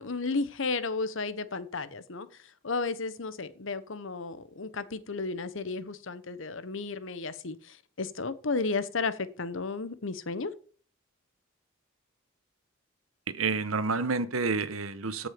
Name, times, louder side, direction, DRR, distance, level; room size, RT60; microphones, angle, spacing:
voice 1, 0.0-2.3 2.6-10.5, left 4 dB, 65° left, 1.0 m, -33 dB
voice 2, 13.3-15.3, right 4 dB, 85° right, 1.1 m, -29 dB
15.0 x 6.2 x 5.2 m
head